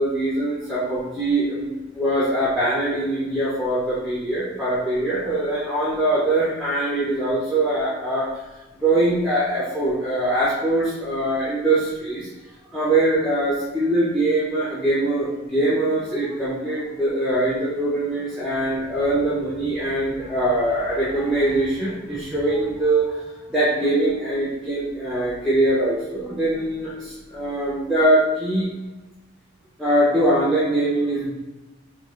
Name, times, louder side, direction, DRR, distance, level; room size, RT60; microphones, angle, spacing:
voice 1, 0.0-8.3 8.8-12.3 12.7-23.2 23.5-28.7 29.8-31.3, right 1 dB, ahead, -9 dB, 0.6 m, -22 dB
4.5 x 2.3 x 2.4 m, 1.1 s
head